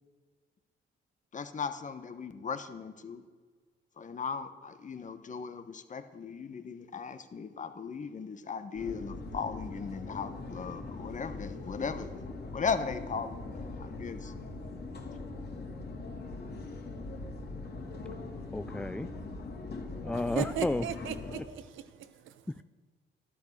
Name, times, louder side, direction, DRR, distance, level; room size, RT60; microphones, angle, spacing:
voice 1, 1.3-3.2 4.0-12.1 12.5-14.3, left 5 dB, 40° left, 1.2 m, -37 dB
sound 1, 8.8-21.4, left 3 dB, 55° left, 2.9 m, -41 dB
voice 2, 18.5-19.1 20.0-20.9 22.6-22.7, left 2 dB, 5° left, 0.3 m, -32 dB
voice 3, 20.2-22.3, right 10 dB, 80° right, 0.9 m, -37 dB
12.0 x 11.5 x 6.6 m
cardioid pair, 90°, 20 cm